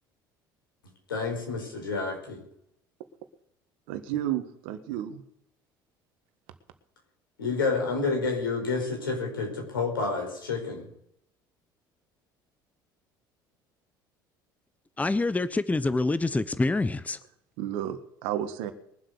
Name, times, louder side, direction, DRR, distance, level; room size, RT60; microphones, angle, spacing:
voice 1, 1.1-2.4 7.4-10.8, left 4 dB, 85° left, 1 dB, 5.0 m, -29 dB
voice 2, 3.9-5.2 17.6-18.7, right 11 dB, 70° right, 10 dB, 1.7 m, -32 dB
voice 3, 15.0-17.2, left 2 dB, 15° left, 15 dB, 0.8 m, -26 dB
22.0 x 7.9 x 6.6 m, 0.73 s
hypercardioid pair, 60°, 11 cm